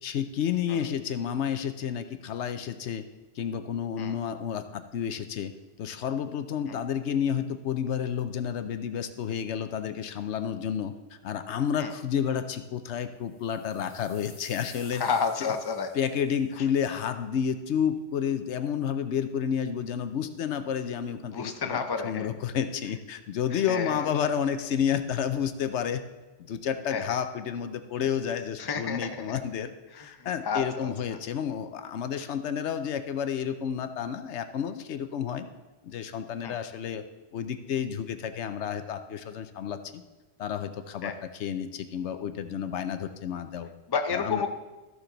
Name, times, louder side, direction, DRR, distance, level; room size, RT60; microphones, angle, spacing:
voice 1, 0.0-3.0 3.4-5.5 5.8-10.9 11.2-15.0 15.9-26.0 26.4-35.5 35.8-37.0 37.3-40.0 40.4-43.7 44.1-44.4, left 8 dB, 80° left, 10 dB, 1.0 m, -30 dB
sound 1, 13.3-16.5, left 1 dB, 50° left, 2.7 m, -52 dB
voice 2, 14.9-15.9 21.3-22.3 23.5-24.3 26.9-27.2 28.6-29.4 29.9-30.9 36.4-36.6 41.0-41.2 43.9-44.5, left 5 dB, 25° left, 6 dB, 0.6 m, -31 dB
13.5 x 7.1 x 3.9 m, 1.1 s
omnidirectional pair, 1.2 m